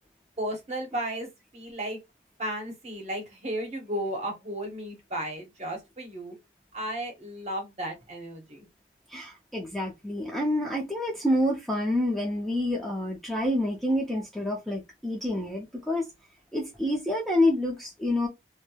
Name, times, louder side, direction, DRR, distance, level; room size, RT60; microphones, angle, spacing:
voice 1, 0.4-2.0 2.4-6.3 6.7-8.7, right 1 dB, 40° right, 0.7 m, -34 dB
voice 2, 9.1-16.1 16.5-18.3, left 1 dB, ahead, 0.4 m, -28 dB
3.0 x 2.0 x 2.2 m
head